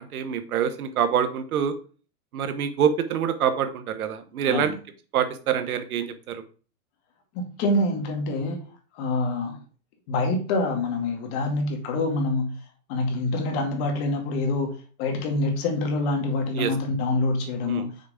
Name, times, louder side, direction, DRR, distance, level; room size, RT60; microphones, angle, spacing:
voice 1, 0.0-1.7 2.3-4.7 5.1-6.4 16.5-16.7 17.7-17.9, right 8 dB, 85° right, 10 dB, 1.4 m, -25 dB
voice 2, 7.3-8.6 8.9-9.6 10.1-12.6 12.9-14.7 15.0-17.9, left 2 dB, 45° left, 3 dB, 2.2 m, -26 dB
6.5 x 4.8 x 5.1 m, 0.38 s
supercardioid pair, 150°, 42 cm